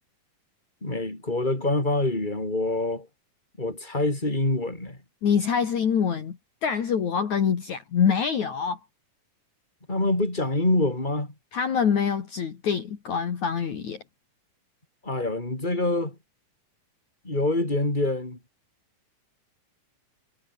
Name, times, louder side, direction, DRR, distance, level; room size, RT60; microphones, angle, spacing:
voice 1, 0.8-3.1 3.6-5.0 9.9-11.3 15.0-16.2 17.2-18.4, left 2 dB, 10° left, 5.7 m, -25 dB
voice 2, 5.2-8.8 11.5-14.0, left 7 dB, 55° left, 3.7 m, -25 dB
omnidirectional pair, 4.1 m